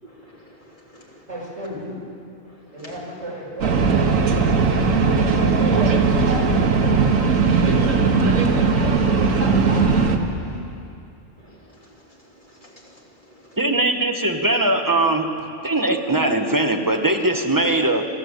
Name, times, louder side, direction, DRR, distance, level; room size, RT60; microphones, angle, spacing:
voice 1, 0.0-1.3 2.4-2.9 11.4-13.6, equal, 35° left, -3 dB, 3.6 m, -49 dB
voice 2, 1.3-1.9 2.7-3.7 5.0-6.8 7.2-10.7, right 1 dB, 60° right, -4 dB, 6.6 m, -34 dB
sound 1, 3.6-10.2, right 4 dB, 85° right, 1.7 m, -18 dB
voice 3, 13.6-15.3 15.6-18.0, right 2 dB, 15° right, 3 dB, 1.4 m, -20 dB
28.0 x 12.0 x 8.3 m, 2.6 s
omnidirectional pair, 1.3 m